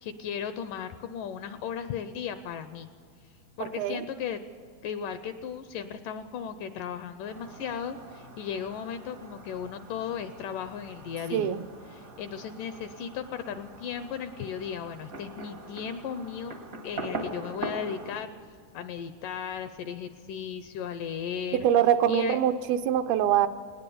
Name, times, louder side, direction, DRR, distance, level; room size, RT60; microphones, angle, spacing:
voice 1, 0.0-2.9 3.6-4.4 4.8-11.5 11.9-16.5 16.8-18.3 18.7-21.7 22.1-22.4, left 8 dB, 80° left, 10 dB, 2.0 m, -36 dB
voice 2, 3.6-4.1 11.3-11.6 21.5-23.5, right 10 dB, 80° right, 10 dB, 2.5 m, -24 dB
Fireworks, 7.3-18.2, right 2 dB, 65° right, 0.8 m, -42 dB
19.5 x 19.5 x 7.0 m, 2.2 s
omnidirectional pair, 4.4 m